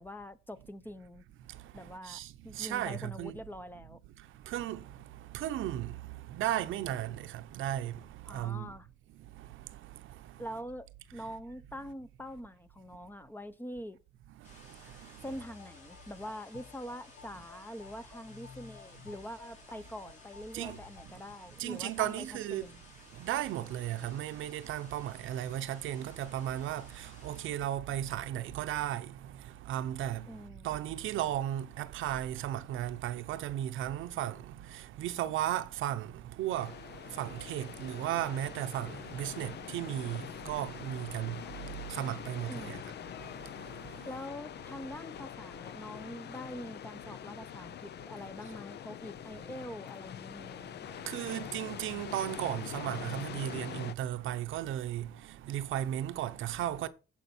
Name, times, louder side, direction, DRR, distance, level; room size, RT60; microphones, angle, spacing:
voice 1, 0.0-1.2 1.7-4.0 8.3-8.9 10.4-14.0 15.2-22.8 30.3-30.7 42.5-42.8 44.1-50.7, equal, 10° left, 0.7 m, -44 dB
voice 2, 1.4-3.4 4.2-8.7 9.1-10.4 14.4-15.2 20.5-21.2 21.5-22.7 23.1-42.8 43.1-44.1 50.6-56.9, right 12 dB, 85° right, 0.8 m, -36 dB
sound 1, 14.4-27.5, left 2 dB, 40° left, 5.0 m, -57 dB
sound 2, 15.2-21.1, left 6 dB, 75° left, 1.7 m, -54 dB
sound 3, 36.5-53.9, left 10 dB, 60° left, 0.6 m, -44 dB
15.5 x 5.3 x 4.3 m
cardioid pair, 90°, 20 cm